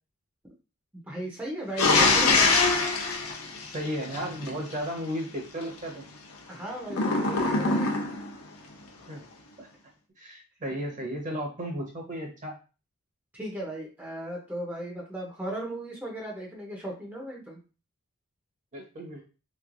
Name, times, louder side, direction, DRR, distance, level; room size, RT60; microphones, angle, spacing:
voice 1, 1.1-2.6 6.5-7.9 13.3-17.6, right 1 dB, 10° right, -3 dB, 0.7 m, -36 dB
sound 1, 1.8-4.5 6.9-8.3, left 3 dB, 75° left, 0.7 m, -23 dB
voice 2, 3.6-6.1 9.1-9.2 9.6-9.7 10.2-12.5 18.7-19.3, equal, 35° right, 0 dB, 0.9 m, -34 dB
3.4 x 3.1 x 2.5 m, 0.33 s
head